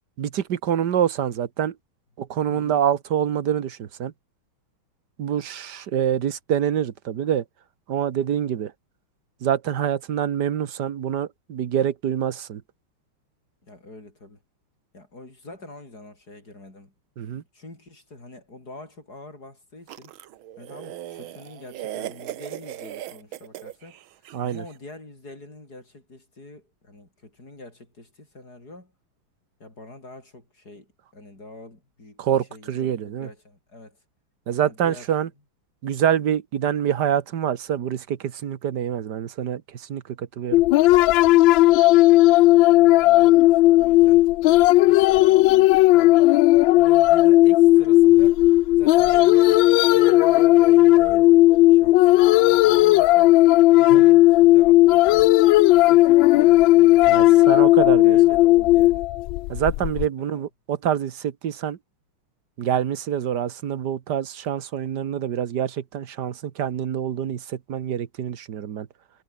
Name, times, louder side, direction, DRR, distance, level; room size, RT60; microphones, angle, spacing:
voice 1, 0.2-1.7 2.2-4.1 5.2-7.4 7.9-8.7 9.4-12.6 17.2-17.4 24.3-24.6 32.2-33.3 34.5-35.3 35.8-40.6 53.9-54.0 57.1-58.2 59.5-61.8 62.6-68.9, right 9 dB, 55° right, 1.7 m, -26 dB
voice 2, 2.5-2.8 13.6-14.4 14.9-16.9 17.3-20.1 20.6-28.9 29.6-34.0 34.6-35.3 42.8-48.4 48.8-53.3 53.7-55.4 55.7-57.5 58.0-59.0 60.2-60.5, left 2 dB, 45° left, 7.3 m, -44 dB
sound 1, 19.9-24.6, right 13 dB, 70° right, 1.7 m, -37 dB
sound 2, 40.5-60.1, left 17 dB, 75° left, 1.2 m, -15 dB
omnidirectional pair, 2.4 m